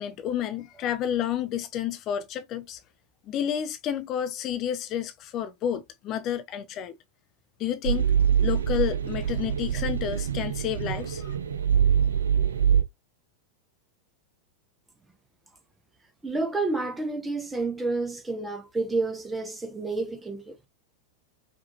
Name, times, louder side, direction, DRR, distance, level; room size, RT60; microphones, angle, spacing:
voice 1, 0.0-2.8 3.3-6.9 7.6-8.1 8.4-11.4, left 10 dB, 35° left, 0.4 m, -30 dB
sound 1, 7.8-12.8, right 8 dB, 70° right, 0.5 m, -24 dB
voice 2, 16.2-20.7, right 3 dB, 10° right, 0.8 m, -30 dB
4.8 x 2.6 x 2.6 m
figure-of-eight pair, 90°, 0 cm